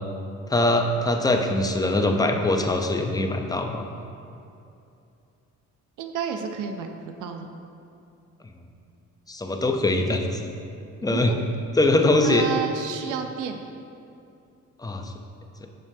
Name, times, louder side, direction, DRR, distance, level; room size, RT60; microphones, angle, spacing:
voice 1, 0.5-3.9 9.3-10.5 11.0-11.3 11.8-12.5 14.8-15.1 15.6-15.7, left 2 dB, 15° left, 4 dB, 0.5 m, -22 dB
voice 2, 6.0-6.9 7.2-7.5 11.1-11.4 12.2-13.6, right 7 dB, 85° right, 6 dB, 0.6 m, -31 dB
7.2 x 6.5 x 2.7 m, 2.6 s
cardioid pair, 90°, 30 cm